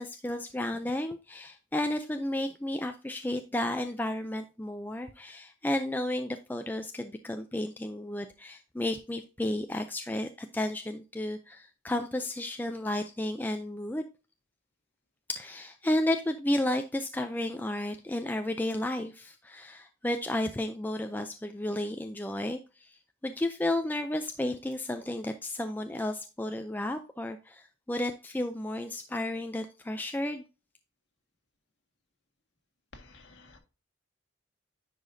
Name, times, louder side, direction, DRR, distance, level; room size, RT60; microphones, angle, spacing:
voice 1, 0.0-14.0 15.3-30.4, left 1 dB, 10° left, 6 dB, 0.3 m, -32 dB
voice 2, 32.9-33.6, left 2 dB, 55° left, 3 dB, 1.8 m, -52 dB
10.0 x 5.0 x 2.6 m, 0.31 s
head